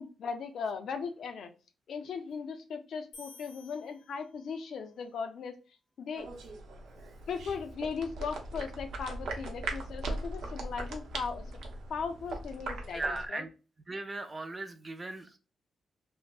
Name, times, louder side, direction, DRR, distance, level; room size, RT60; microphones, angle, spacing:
voice 1, 0.0-1.5 1.9-5.6 6.0-6.3 7.3-11.5 11.9-13.4, left 5 dB, 60° left, 0.4 m, -38 dB
sound 1, 3.1-4.7, left 4 dB, 85° left, 0.8 m, -54 dB
sound 2, 6.2-13.3, right 2 dB, 90° right, 0.7 m, -40 dB
sound 3, 7.4-12.7, right 1 dB, 60° right, 0.8 m, -52 dB
voice 2, 12.9-13.5 13.9-15.4, right 2 dB, 20° right, 0.3 m, -37 dB
3.3 x 2.0 x 2.3 m
wide cardioid pair, 175°, 0 cm